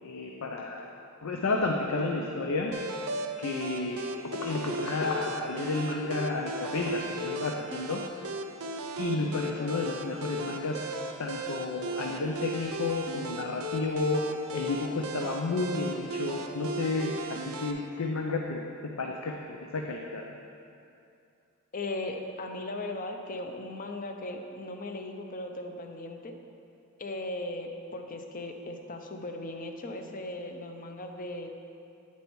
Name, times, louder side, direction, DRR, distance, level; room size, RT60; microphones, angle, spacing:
voice 1, 0.0-0.9 1.2-2.7 3.4-4.0 4.3-8.0 9.0-10.9 11.2-14.2 14.5-17.1 17.6-18.7 19.0-20.2, left 3 dB, 85° left, 1 dB, 0.6 m, -31 dB
sound 1, 2.7-17.7, right 1 dB, 85° right, 0.6 m, -37 dB
voice 2, 21.7-26.3 27.0-31.5, left 2 dB, 40° left, 4 dB, 0.6 m, -38 dB
8.9 x 8.3 x 3.1 m, 2.6 s
head